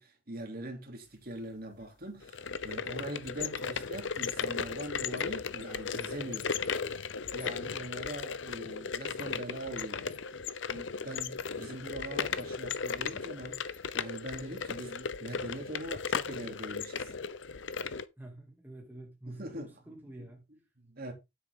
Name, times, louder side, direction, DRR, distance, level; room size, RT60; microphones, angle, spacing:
voice 1, 0.0-6.5 7.3-10.2 10.7-17.1 19.2-19.7 20.5-21.1, right 1 dB, 50° right, 3.0 m, -42 dB
sound 1, 2.2-18.1, left 6 dB, 75° left, 0.7 m, -36 dB
voice 2, 18.2-20.4, right 1 dB, 10° right, 2.6 m, -48 dB
9.6 x 8.1 x 3.7 m
head